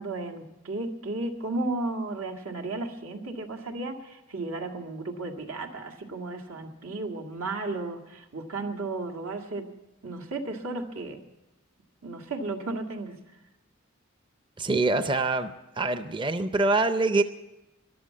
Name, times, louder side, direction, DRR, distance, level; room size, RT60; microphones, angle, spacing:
voice 1, 0.0-9.6 10.0-11.2 12.0-13.2, right 2 dB, 85° right, 3 dB, 1.8 m, -34 dB
voice 2, 14.6-15.5 15.8-17.2, right 3 dB, 25° right, 10 dB, 0.5 m, -24 dB
14.0 x 11.5 x 8.3 m, 0.96 s
head